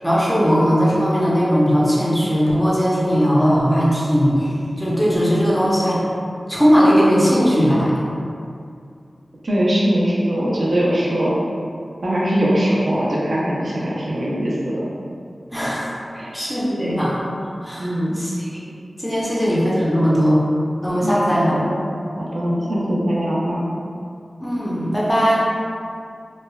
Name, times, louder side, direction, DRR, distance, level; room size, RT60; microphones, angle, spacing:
voice 1, 0.0-6.0 6.5-8.0 15.5-15.9 16.3-17.2 17.6-17.9 18.2-18.6 19.0-20.4 20.8-21.6 24.4-25.4, equal, 5° left, -7 dB, 0.6 m, -18 dB
voice 2, 9.4-11.3 12.0-14.9 16.1-16.3 17.8-18.2 21.0-21.7 22.2-23.6, equal, 60° right, -6 dB, 0.6 m, -21 dB
3.0 x 2.1 x 2.3 m, 2.4 s
wide cardioid pair, 65°, 0 cm